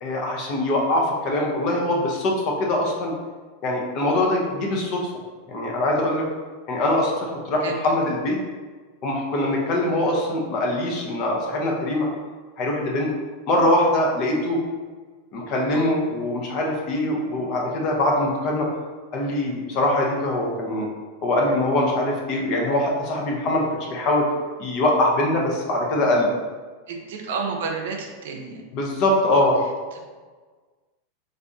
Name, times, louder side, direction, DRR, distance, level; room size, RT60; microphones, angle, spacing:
voice 1, 0.0-3.1 3.6-5.0 5.5-6.3 6.7-8.4 9.0-12.1 12.6-13.1 13.5-14.6 15.3-18.7 19.1-20.9 21.2-24.3 24.6-26.4 28.7-29.6, left 1 dB, 50° left, -1 dB, 0.8 m, -23 dB
voice 2, 26.9-28.6 29.9-30.0, right 5 dB, 75° right, 2 dB, 0.5 m, -30 dB
3.4 x 2.5 x 2.6 m, 1.4 s
supercardioid pair, 125°, 0 cm